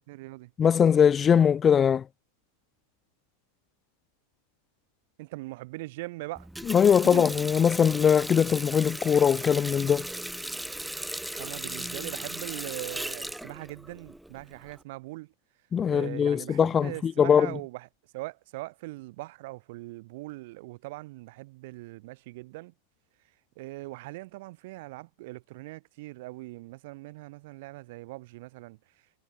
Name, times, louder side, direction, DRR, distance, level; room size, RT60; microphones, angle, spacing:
voice 1, 0.1-0.5 5.2-6.5 7.1-7.4 11.4-15.3 15.9-17.9 18.1-22.7 23.6-28.8, right 21 dB, 50° right, 3.6 m, -41 dB
voice 2, 0.6-2.0 6.7-10.1 15.7-17.5, left 7 dB, 20° left, 0.9 m, -21 dB
Water tap faucet, 6.4-14.8, right 1 dB, 5° right, 2.4 m, -37 dB
figure-of-eight pair, 90°, 0 cm